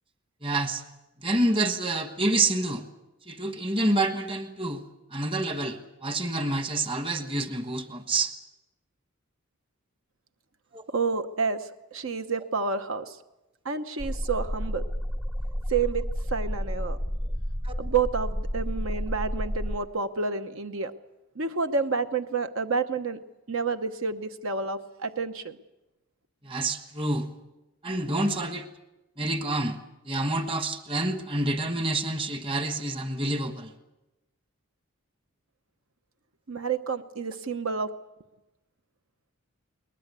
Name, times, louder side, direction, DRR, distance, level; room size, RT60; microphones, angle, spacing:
voice 1, 0.4-0.8 1.2-2.8 3.3-4.8 5.1-8.3 10.7-10.8 17.6-17.7 26.4-27.3 27.8-28.7 29.2-29.8 30.0-33.7, right 2 dB, 25° right, 8 dB, 1.4 m, -28 dB
voice 2, 10.9-13.2 13.6-14.9 15.7-17.0 17.8-20.9 21.4-23.2 23.5-25.6 36.5-37.9, right 5 dB, 70° right, 9 dB, 1.0 m, -29 dB
sound 1, 14.0-19.8, equal, 5° right, 0.7 m, -31 dB
22.0 x 20.0 x 8.2 m, 0.99 s
head